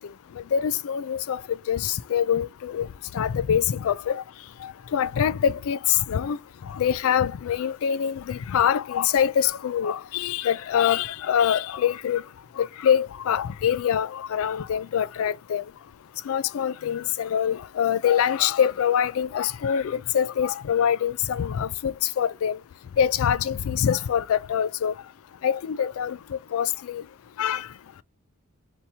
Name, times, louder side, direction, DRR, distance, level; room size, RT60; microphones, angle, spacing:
voice 1, 0.5-1.4 1.7-2.9 3.1-4.2 4.6-6.4 6.7-12.2 12.6-15.6 16.3-22.6 23.0-24.9 25.4-27.0 27.4-27.7, left 8 dB, 65° left, 0.3 m, -24 dB
4.4 x 2.8 x 3.3 m
head